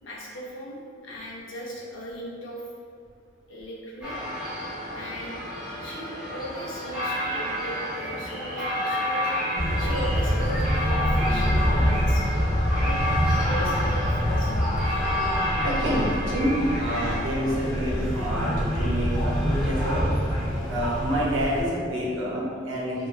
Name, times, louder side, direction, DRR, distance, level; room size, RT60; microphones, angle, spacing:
voice 1, 0.0-2.7 3.5-4.2 4.9-5.4 5.8-9.3 9.8-12.3 12.8-14.5, equal, 80° left, -3 dB, 0.5 m, -38 dB
sound 1, 4.0-17.2, left 1 dB, 5° right, 0.5 m, -30 dB
sound 2, 9.5-21.6, equal, 30° left, 1.2 m, -25 dB
voice 2, 15.6-20.1 20.7-23.1, equal, 80° right, -5 dB, 0.6 m, -28 dB
3.1 x 2.2 x 2.3 m, 2.2 s
head